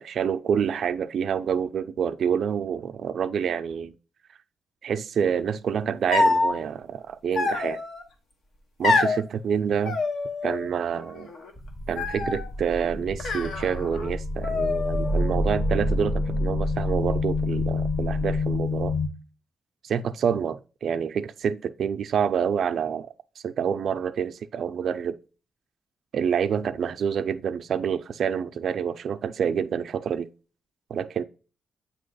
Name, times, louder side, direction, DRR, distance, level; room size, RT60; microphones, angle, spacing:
voice 1, 0.0-3.9 4.8-7.8 8.8-10.0 10.4-11.3 11.9-18.9 19.8-23.1 23.4-25.2 26.1-30.3 30.9-31.2, right 7 dB, 60° right, 0.4 m, -27 dB
sound 1, 6.1-6.5 7.3-8.0 8.8-9.2 9.8-10.7 11.0-11.5 12.0-12.5 13.2-14.1 14.4-15.2, left 3 dB, 75° left, 1.2 m, -26 dB
sound 2, 11.6-19.1, left 2 dB, 15° left, 0.7 m, -27 dB
8.4 x 2.9 x 3.9 m
wide cardioid pair, 170°, 0 cm